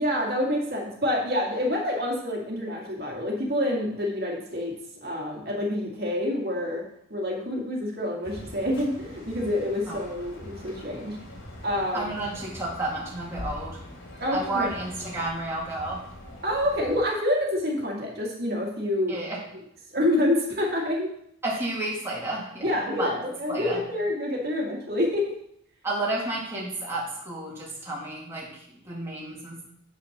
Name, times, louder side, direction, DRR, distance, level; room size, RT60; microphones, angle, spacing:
voice 1, 0.0-4.7 5.0-6.8 7.1-11.2 11.6-12.1 14.2-14.7 16.4-19.1 19.9-21.1 22.6-25.3, left 1 dB, 50° right, -1 dB, 2.0 m, -27 dB
sound 1, 8.2-17.0, left 1 dB, 70° left, 2.6 m, -43 dB
voice 2, 11.9-13.8 14.3-16.0 19.1-19.4 21.4-23.1 23.5-23.8 25.8-29.6, right 2 dB, 10° right, -5 dB, 2.0 m, -31 dB
8.2 x 5.9 x 5.8 m, 0.73 s
head